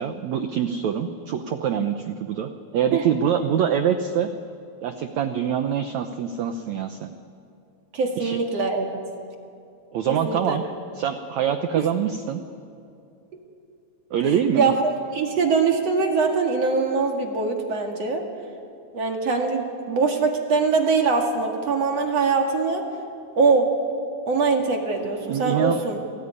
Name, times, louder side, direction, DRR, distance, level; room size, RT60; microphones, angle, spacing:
voice 1, 0.0-4.3 4.8-7.1 8.2-8.4 9.9-10.6 10.9-12.4 14.1-14.7 25.3-25.8, right 8 dB, 75° right, 8 dB, 1.6 m, -25 dB
voice 2, 7.9-9.0 10.1-10.6 11.8-11.9 14.3-18.2 18.9-22.9 23.4-23.7 24.3-26.0, right 4 dB, 45° right, 3 dB, 2.8 m, -23 dB
28.5 x 18.5 x 9.8 m, 2.5 s
omnidirectional pair, 4.4 m